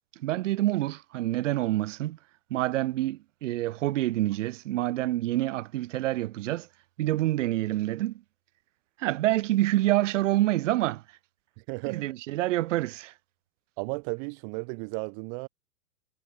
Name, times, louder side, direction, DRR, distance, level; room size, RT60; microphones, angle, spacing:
voice 1, 0.2-2.2 2.5-6.7 7.0-8.2 9.0-11.0 11.9-13.1, right 16 dB, 50° right, 2.0 m, -27 dB
voice 2, 11.6-12.0 13.8-15.5, right 39 dB, 30° right, 0.9 m, -34 dB
hypercardioid pair, 120°, 47 cm